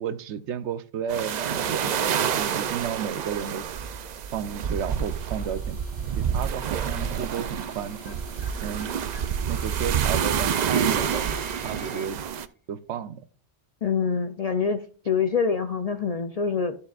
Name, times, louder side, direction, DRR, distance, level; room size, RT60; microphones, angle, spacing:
voice 1, 0.0-3.7 4.3-5.8 6.2-8.2 8.6-8.9 9.5-12.2 12.7-13.2, right 8 dB, 80° right, 13 dB, 0.9 m, -32 dB
sound 1, 1.1-12.5, right 8 dB, 55° right, 0.5 m, -28 dB
sound 2, 4.7-12.1, right 2 dB, 75° left, 3.7 m, -49 dB
sound 3, 7.0-12.4, left 1 dB, 10° left, 0.7 m, -46 dB
voice 2, 13.8-16.8, left 6 dB, 50° left, 8 dB, 0.5 m, -25 dB
13.0 x 6.7 x 2.4 m, 0.40 s
omnidirectional pair, 1.2 m